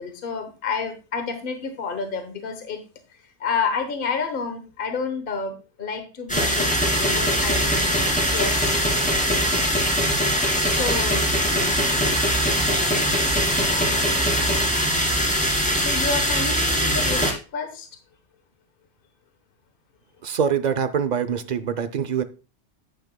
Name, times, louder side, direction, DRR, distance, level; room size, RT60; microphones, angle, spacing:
voice 1, 0.0-2.8 3.4-6.7 7.0-8.8 10.6-11.2 15.8-17.3 17.5-17.9, left 5 dB, 50° left, 1.2 m, -29 dB
sound 1, 6.3-17.3, equal, 5° left, 2.3 m, -21 dB
voice 2, 20.2-22.2, right 7 dB, 45° right, 0.7 m, -24 dB
10.5 x 8.8 x 2.2 m
omnidirectional pair, 1.2 m